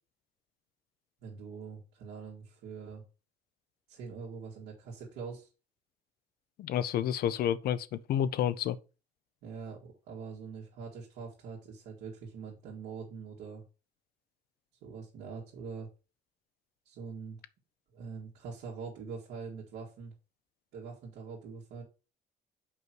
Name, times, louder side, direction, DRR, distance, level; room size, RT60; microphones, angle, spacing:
voice 1, 1.2-3.0 3.9-5.5 9.4-13.7 14.8-15.9 16.8-17.4 17.9-20.1 20.7-21.8, right 5 dB, 85° right, 2.2 m, -43 dB
voice 2, 6.6-8.8, left 10 dB, 65° left, 0.6 m, -30 dB
5.5 x 4.6 x 6.2 m
cardioid pair, 110°, 17 cm